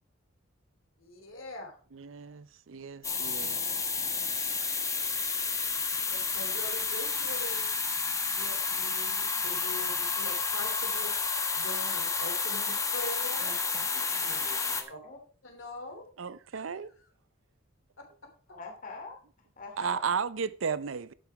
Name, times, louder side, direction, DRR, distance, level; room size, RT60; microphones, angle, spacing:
voice 1, 1.0-1.7 6.1-7.7 8.3-11.1 11.5-13.5 14.2-14.4 14.9-15.0 15.4-16.0 16.8-17.1, left 1 dB, 75° left, 3.1 m, -43 dB
voice 2, 1.9-3.6 13.4-14.3 16.2-16.9 19.8-21.1, right 6 dB, 75° right, 0.6 m, -35 dB
sound 1, 3.0-14.8, left 5 dB, 15° left, 1.1 m, -30 dB
voice 3, 3.1-4.5 14.1-15.2 18.5-19.2 19.6-20.0, left 3 dB, 45° left, 2.7 m, -47 dB
11.5 x 6.7 x 4.7 m
head